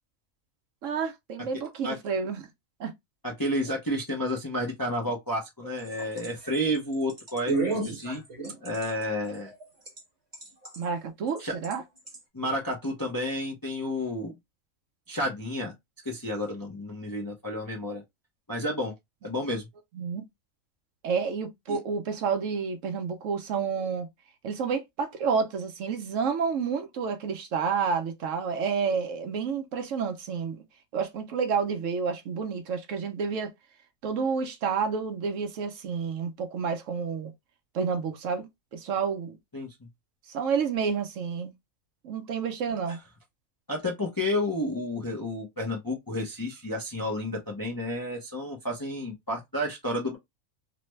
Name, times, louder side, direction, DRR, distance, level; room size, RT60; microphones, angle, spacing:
voice 1, 0.8-2.5 2.8-2.9 10.8-11.8 19.9-20.2 21.0-24.1 24.4-30.6 30.9-33.5 34.0-37.3 37.7-39.4 40.3-41.5 42.0-43.0, right 6 dB, 70° right, 1.0 m, -29 dB
voice 2, 3.2-8.2 8.6-9.5 11.4-11.5 12.3-14.4 15.1-15.7 16.0-18.0 18.5-18.9 19.2-19.7 21.7-21.8 39.5-39.7 43.7-50.2, left 1 dB, 25° left, 0.5 m, -31 dB
sound 1, 5.6-10.0 10.3-10.9 11.4-11.7 12.1-12.2, right 3 dB, 30° right, 1.3 m, -32 dB
3.2 x 2.1 x 3.1 m
omnidirectional pair, 1.4 m